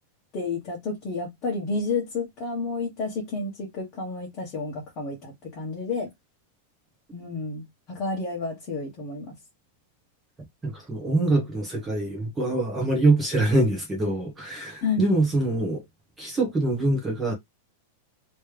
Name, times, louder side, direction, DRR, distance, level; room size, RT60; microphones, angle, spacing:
voice 1, 0.3-6.1 7.1-9.3 14.8-15.1, left 3 dB, 30° left, 1.4 m, -30 dB
voice 2, 10.6-15.8 16.2-17.3, right 2 dB, 10° right, 1.1 m, -24 dB
3.2 x 3.1 x 3.4 m
supercardioid pair, 170°, 0 cm